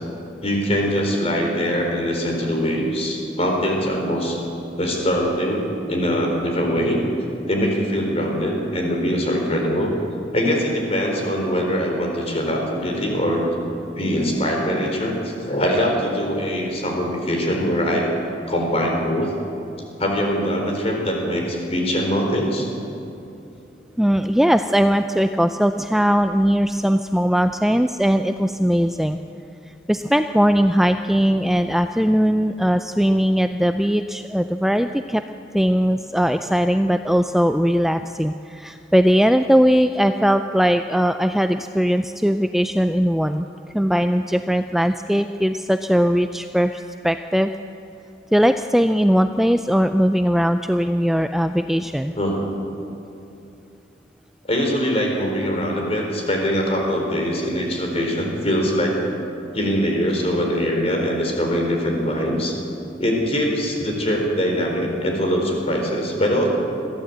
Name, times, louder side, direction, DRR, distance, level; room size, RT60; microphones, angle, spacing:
voice 1, 0.4-4.4 4.8-7.0 7.5-9.9 10.3-13.5 14.0-18.1 18.5-19.3 20.0-22.7 52.2-52.4 54.5-59.0 59.5-62.6 63.0-66.5, equal, 35° left, 1 dB, 4.2 m, -22 dB
voice 2, 24.0-29.2 29.9-35.2 35.5-43.4 43.7-47.5 48.3-52.1, equal, ahead, 8 dB, 0.4 m, -19 dB
21.5 x 15.0 x 8.1 m, 2.8 s
head